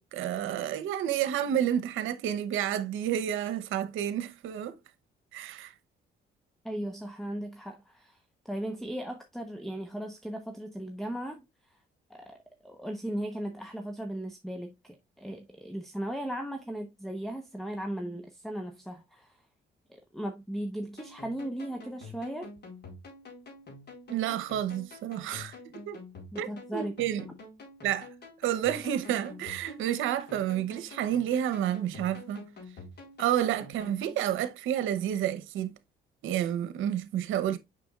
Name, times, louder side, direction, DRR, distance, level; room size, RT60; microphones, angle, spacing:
voice 1, 0.0-4.7 5.3-5.7 24.1-25.6 25.9-26.0 26.4-27.2 27.8-28.1 28.4-32.4 33.2-35.7 36.2-37.6, right 11 dB, 85° right, 0.9 m, -30 dB
voice 2, 6.6-8.2 8.4-11.4 12.1-12.4 12.6-19.4 19.9-22.5 26.3-27.0, right 1 dB, ahead, 0.9 m, -37 dB
sound 1, 21.0-34.2, left 2 dB, 55° left, 4.4 m, -48 dB
6.9 x 5.9 x 2.4 m
cardioid pair, 90°, 20 cm